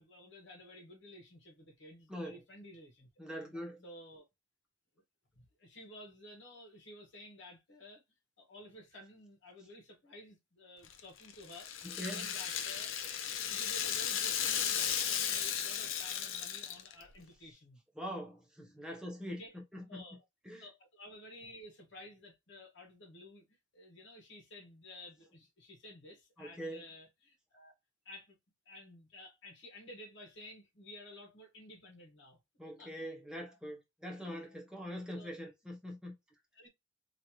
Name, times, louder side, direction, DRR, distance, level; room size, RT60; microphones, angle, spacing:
voice 1, 0.0-3.1 3.8-4.2 5.3-8.0 8.4-13.0 13.4-17.8 19.4-19.5 19.9-20.2 20.6-23.4 23.7-27.7 28.0-28.4 28.6-32.4 32.8-32.9 34.2-34.5 35.1-35.3 36.5-36.7, left 1 dB, 65° left, 1.3 m, -53 dB
voice 2, 2.1-2.4 3.2-3.8 11.8-12.2 18.0-20.0 20.5-20.6 26.4-26.8 32.6-36.1, equal, 5° right, 0.9 m, -43 dB
Rattle (instrument), 10.8-17.1, left 8 dB, 90° left, 0.6 m, -35 dB
3.2 x 2.6 x 2.8 m
head